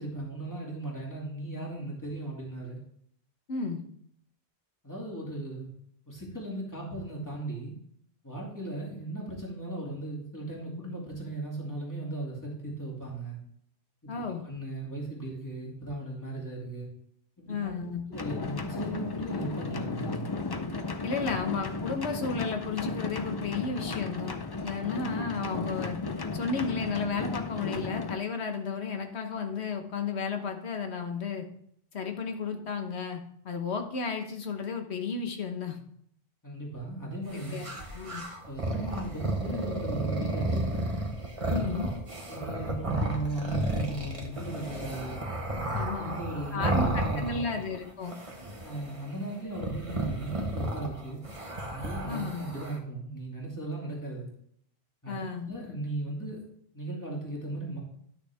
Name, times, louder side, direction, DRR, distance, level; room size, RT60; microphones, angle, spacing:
voice 1, 0.0-2.8 4.8-5.7 6.1-7.7 8.2-13.4 14.0-16.9 17.4-17.7 18.1-20.3 36.4-37.6 38.5-41.0 41.4-41.9 42.3-45.2 46.0-47.4 48.6-51.2 51.7-54.3 55.0-56.4 56.7-57.8, right 2 dB, 15° left, -3 dB, 2.4 m, -37 dB
voice 2, 3.5-3.8 14.1-14.5 17.5-18.0 21.0-24.4 24.6-26.0 26.3-31.5 31.9-35.8 37.3-38.2 41.5-41.9 45.7-46.2 46.5-48.2 52.1-52.4 55.1-55.5, left 5 dB, 75° left, 5 dB, 1.4 m, -33 dB
sound 1, 18.1-28.2, left 3 dB, 35° left, 0.4 m, -34 dB
sound 2, 37.3-47.8 48.0-49.0 49.5-52.8, right 1 dB, 30° right, 1.2 m, -33 dB
11.0 x 6.4 x 3.5 m, 0.68 s
omnidirectional pair, 1.1 m